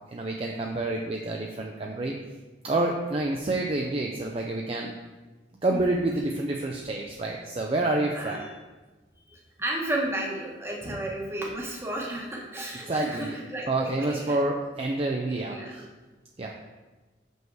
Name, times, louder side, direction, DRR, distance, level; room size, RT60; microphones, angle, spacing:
voice 1, 0.1-2.1 2.6-4.9 5.6-8.4 10.9-11.0 12.9-13.4 13.7-15.8 16.4-16.5, right 2 dB, 30° right, 0 dB, 0.4 m, -28 dB
voice 2, 8.1-8.5 9.3-14.4 15.3-15.8, right 1 dB, 15° right, -2 dB, 1.1 m, -33 dB
6.1 x 5.3 x 4.7 m, 1.2 s
head